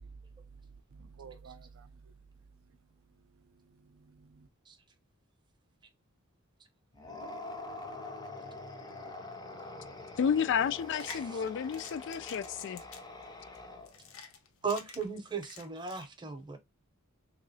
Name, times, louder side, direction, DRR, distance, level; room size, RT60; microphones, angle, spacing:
voice 1, 0.0-4.5, right 5 dB, 70° right, 0.4 m, -54 dB
sound 1, 6.9-14.1, left 2 dB, 20° left, 0.6 m, -45 dB
voice 2, 10.2-12.8, left 7 dB, 55° left, 0.3 m, -31 dB
sound 2, 10.8-16.1, left 5 dB, 75° left, 0.7 m, -49 dB
voice 3, 11.1-11.4 14.6-16.6, right 5 dB, 20° right, 0.7 m, -37 dB
3.6 x 3.0 x 2.6 m
head